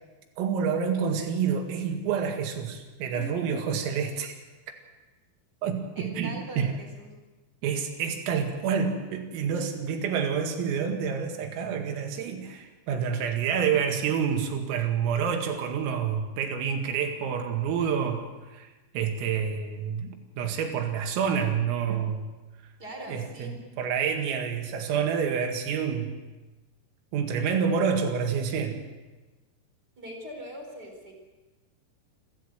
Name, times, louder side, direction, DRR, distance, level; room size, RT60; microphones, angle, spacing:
voice 1, 0.4-4.4 5.6-6.7 7.6-18.7 18.9-22.3 23.1-23.5 23.8-26.2 27.1-28.8, right 7 dB, 85° right, 4 dB, 4.7 m, -28 dB
voice 2, 3.1-3.7 6.0-7.1 9.5-9.9 13.1-13.3 22.8-23.6 30.0-31.1, right 1 dB, 20° right, 1 dB, 3.9 m, -42 dB
28.0 x 13.0 x 8.2 m, 1.2 s
omnidirectional pair, 5.9 m